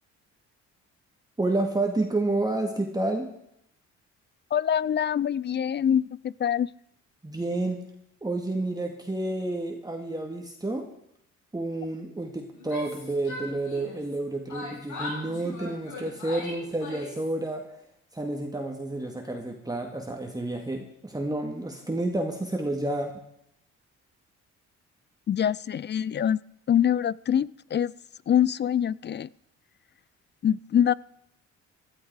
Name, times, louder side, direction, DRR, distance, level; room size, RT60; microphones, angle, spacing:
voice 1, 1.4-3.3 7.2-7.8 8.2-10.9 11.5-17.6 18.1-23.2, right 2 dB, 10° right, 2 dB, 2.1 m, -30 dB
voice 2, 4.5-6.7 25.3-26.4 26.7-27.9 28.3-29.3 30.4-30.9, left 9 dB, 35° left, 22 dB, 0.4 m, -24 dB
Yell, 12.5-14.2 14.5-17.3, left 2 dB, 75° left, 7.9 m, -39 dB
16.0 x 12.5 x 4.8 m, 0.78 s
cardioid pair, 90°, 30 cm